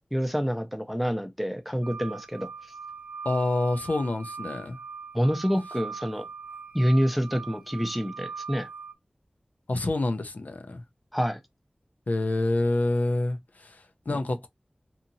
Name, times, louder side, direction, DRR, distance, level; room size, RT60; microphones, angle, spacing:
voice 1, 0.1-2.5 5.1-6.3 6.7-8.7 11.1-11.4 14.1-14.2, equal, ahead, 0.5 m, -27 dB
sound 1, 1.8-8.9, right 5 dB, 60° right, 0.4 m, -41 dB
voice 2, 3.2-4.8 9.7-10.8 12.1-14.5, left 2 dB, 70° left, 0.5 m, -27 dB
2.8 x 2.7 x 2.5 m
wide cardioid pair, 60°, 3 cm